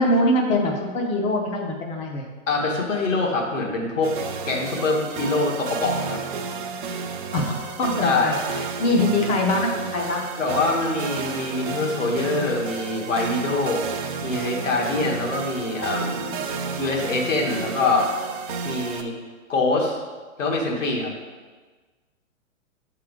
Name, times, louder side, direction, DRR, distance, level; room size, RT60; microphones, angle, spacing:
voice 1, 0.0-2.3 7.3-10.2, left 1 dB, 15° left, 1 dB, 0.6 m, -23 dB
voice 2, 2.5-4.1 4.5-6.2 8.0-8.3 10.4-16.4 16.8-18.1 18.6-19.1 19.5-20.0 20.4-21.1, left 3 dB, 70° left, -2 dB, 1.7 m, -24 dB
sound 1, 4.0-19.0, right 5 dB, 40° right, 0.6 m, -31 dB
7.2 x 3.8 x 4.7 m, 1.4 s
figure-of-eight pair, 120°, 39 cm